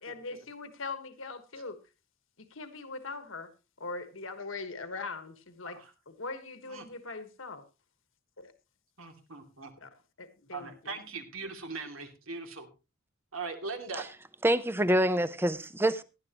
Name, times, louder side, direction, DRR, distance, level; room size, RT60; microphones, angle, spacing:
voice 1, 0.0-1.8 2.4-3.5 3.8-5.8 6.1-7.6 8.4-8.5 9.8-9.9 10.2-11.0, left 3 dB, 65° left, 1.4 m, -41 dB
voice 2, 9.0-9.7 10.5-12.7 13.3-14.1, right 4 dB, 75° right, 2.6 m, -40 dB
voice 3, 14.4-16.0, right 1 dB, 10° right, 0.7 m, -26 dB
17.0 x 11.5 x 3.0 m
head